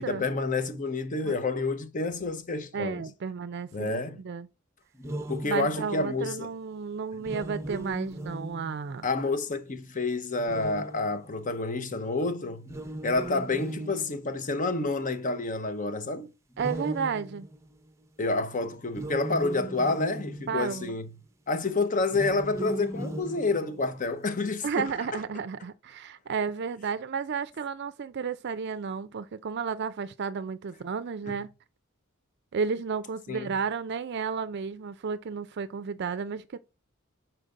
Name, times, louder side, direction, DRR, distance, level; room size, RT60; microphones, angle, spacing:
voice 1, 0.0-3.0 3.7-4.2 5.3-6.5 9.0-12.7 13.0-16.3 18.2-21.1 21.5-24.9 31.3-31.4 33.3-33.5, left 3 dB, 40° left, 0.8 m, -29 dB
voice 2, 2.7-4.5 5.4-9.1 16.6-17.5 20.5-21.0 24.6-31.5 32.5-36.6, right 5 dB, 55° right, 0.4 m, -32 dB
sound 1, 4.9-6.1 7.1-9.1 10.3-11.5 12.6-14.7 16.5-17.9 18.9-20.8 22.1-24.0, right 1 dB, 15° right, 0.7 m, -38 dB
6.6 x 4.5 x 3.6 m
head